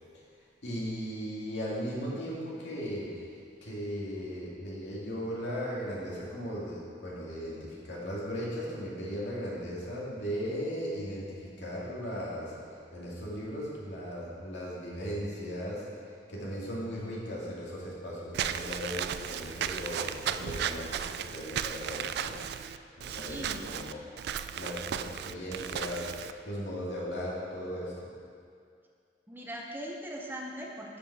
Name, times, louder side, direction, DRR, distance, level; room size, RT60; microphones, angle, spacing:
voice 1, 0.6-3.3 3.6-12.6 12.9-15.9 16.3-22.4 23.0-24.0 24.6-28.1, equal, 70° left, -5 dB, 2.2 m, -37 dB
Walk footsteps / Squeak, 18.3-26.3, right 9 dB, 65° right, 0.3 m, -35 dB
voice 2, 23.1-23.7 29.3-31.0, equal, 10° right, -1 dB, 0.8 m, -40 dB
12.0 x 5.4 x 4.8 m, 2.3 s
head